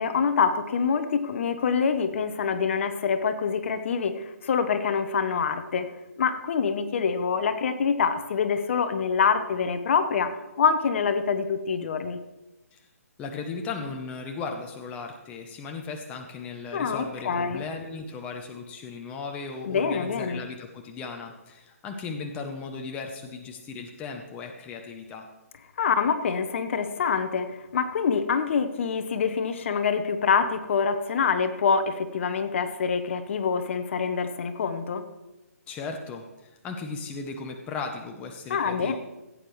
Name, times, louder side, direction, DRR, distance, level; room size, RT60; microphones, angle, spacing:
voice 1, 0.0-5.9 6.2-10.3 10.6-12.2 16.7-17.6 19.7-20.4 25.8-35.0 38.5-39.0, left 6 dB, 50° left, 10 dB, 0.9 m, -25 dB
voice 2, 13.2-25.3 35.7-39.0, left 4 dB, 15° left, 3 dB, 0.7 m, -36 dB
16.0 x 8.8 x 3.2 m, 1.0 s
hypercardioid pair, 155°, 9 cm